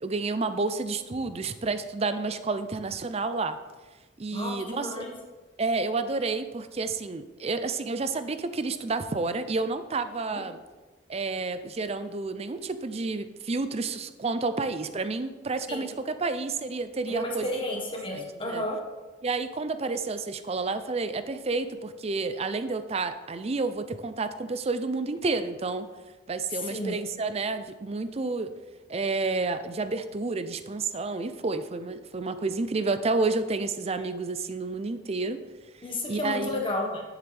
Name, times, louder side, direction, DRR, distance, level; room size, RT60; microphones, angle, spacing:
voice 1, 0.0-3.6 4.2-5.0 5.6-10.6 11.1-17.5 18.1-18.6 19.2-25.9 26.3-28.6 28.9-35.4 36.1-36.6, right 3 dB, 30° right, 11 dB, 0.5 m, -30 dB
voice 2, 4.3-5.1 10.3-10.4 15.7-15.9 17.1-18.8 26.5-27.0 35.8-37.0, left 1 dB, 25° left, 0 dB, 1.5 m, -32 dB
10.5 x 7.4 x 3.4 m, 1.3 s
head